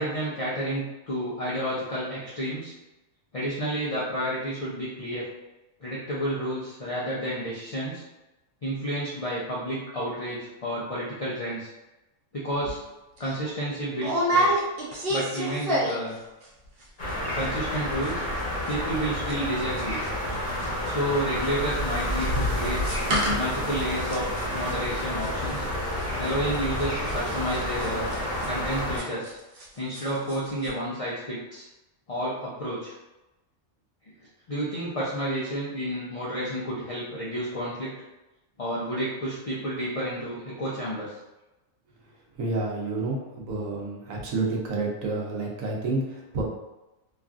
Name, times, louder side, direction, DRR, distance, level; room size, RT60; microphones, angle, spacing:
voice 1, 0.0-2.7 3.3-5.3 5.8-8.0 8.6-11.7 12.3-12.8 13.2-14.5 15.1-16.2 17.3-18.2 18.7-20.0 20.9-22.8 23.4-24.2 24.5-25.7 26.2-28.1 28.5-29.4 29.8-31.7 32.1-32.9 34.0-34.1 34.5-37.9 38.6-41.1, right 1 dB, 65° left, -7 dB, 0.3 m, -30 dB
sound 1, 12.6-12.8 13.2-13.3 14.0-16.2 16.4-16.8 17.1-17.2 17.4-17.8 18.0-20.3 20.6-29.7 29.9-30.4 30.6-30.7, equal, 55° right, 0.7 m, -29 dB
sound 2, 17.0-29.0, left 1 dB, 45° left, 0.8 m, -30 dB
voice 2, 42.4-46.4, right 3 dB, 80° right, -1 dB, 1.1 m, -29 dB
3.0 x 2.4 x 2.4 m, 1.0 s
omnidirectional pair, 1.4 m